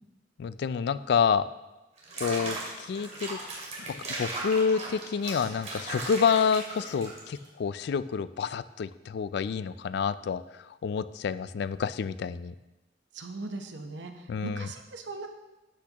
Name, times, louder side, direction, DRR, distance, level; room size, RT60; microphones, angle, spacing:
voice 1, 0.4-1.5 2.2-3.4 3.9-10.4 10.8-12.5 14.3-14.7, left 6 dB, 65° left, 15 dB, 0.3 m, -28 dB
Water / Bathtub (filling or washing), 2.0-7.5, right 2 dB, 40° right, 2.2 m, -37 dB
voice 2, 13.1-15.3, right 2 dB, 75° right, 5 dB, 0.9 m, -39 dB
12.0 x 8.3 x 2.9 m, 1.0 s
head